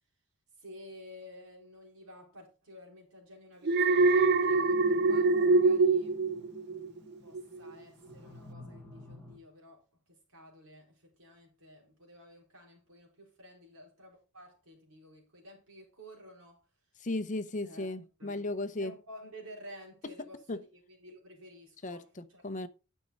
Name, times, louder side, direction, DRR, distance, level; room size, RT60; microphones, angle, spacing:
voice 1, 0.6-16.6 17.6-17.9 18.2-18.5 18.8-22.4, equal, 80° right, 4.4 m, -52 dB
Alarm, 3.6-7.0 7.3-7.7, right 3 dB, 50° right, 0.4 m, -24 dB
sound 1, 3.9-9.4, equal, 10° left, 1.8 m, -51 dB
voice 2, 17.0-18.9 20.5-20.6 21.8-22.7, left 2 dB, 35° left, 0.7 m, -36 dB
10.5 x 6.4 x 4.0 m
head